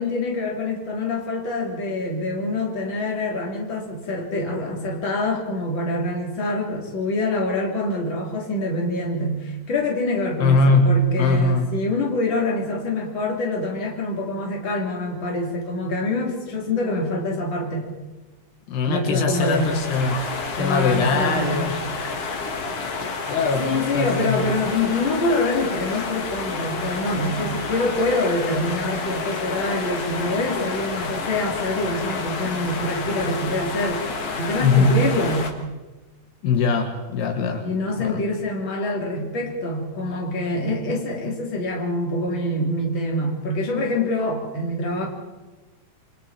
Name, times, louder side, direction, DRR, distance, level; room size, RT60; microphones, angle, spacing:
voice 1, 0.0-17.9 18.9-19.8 20.5-21.7 23.6-34.0 34.4-35.5 37.6-45.1, left 2 dB, 30° left, 0 dB, 3.8 m, -25 dB
voice 2, 10.4-11.8 18.7-20.2 20.6-21.8 23.2-24.4 34.6-35.0 36.4-37.7 38.0-38.2, left 3 dB, 75° left, 5 dB, 3.6 m, -21 dB
sound 1, 19.3-35.5, left 4 dB, 50° left, 2.1 m, -30 dB
28.0 x 24.0 x 4.5 m, 1.2 s
omnidirectional pair, 4.9 m